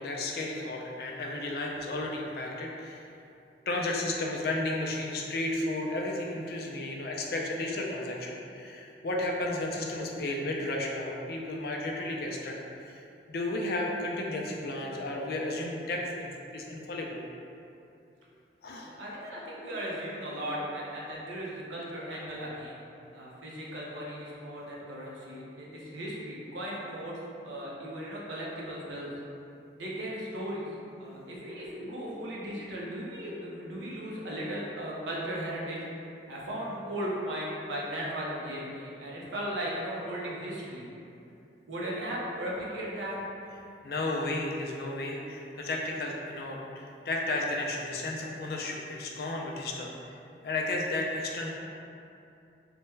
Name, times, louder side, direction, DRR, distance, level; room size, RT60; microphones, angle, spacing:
voice 1, 0.0-3.0 3.7-12.5 12.9-13.0 13.3-17.2 18.6-18.9 43.8-49.9 50.4-51.5, left 2 dB, 55° left, -1 dB, 0.4 m, -33 dB
voice 2, 18.8-22.8 23.1-27.2 27.4-29.1 29.8-30.7 31.0-35.8 36.3-40.9 41.7-43.2, equal, 90° right, -5 dB, 0.7 m, -37 dB
3.3 x 2.2 x 3.2 m, 2.7 s
head